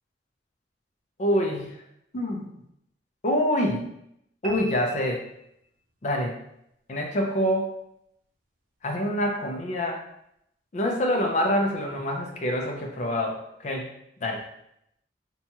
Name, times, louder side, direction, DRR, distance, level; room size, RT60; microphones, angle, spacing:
voice 1, 1.2-1.8 2.1-2.5 3.2-3.9 4.4-5.2 6.0-6.4 6.9-7.7 8.8-10.0 10.7-13.9 14.2-14.4, equal, 40° left, 1 dB, 0.4 m, -26 dB
sound 1, 4.4-6.0, equal, 50° right, 0.4 m, -40 dB
2.8 x 2.2 x 2.8 m, 0.78 s
head